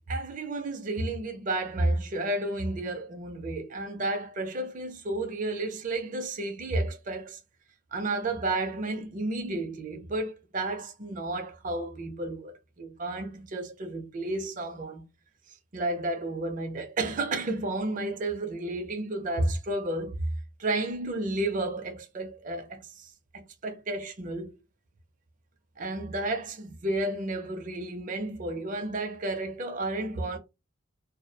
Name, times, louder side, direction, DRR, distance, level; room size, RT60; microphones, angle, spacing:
voice 1, 0.1-7.4 7.9-15.0 15.7-20.1 20.6-24.5 25.8-30.4, right 2 dB, 35° right, 0.5 m, -32 dB
2.2 x 2.1 x 2.6 m
head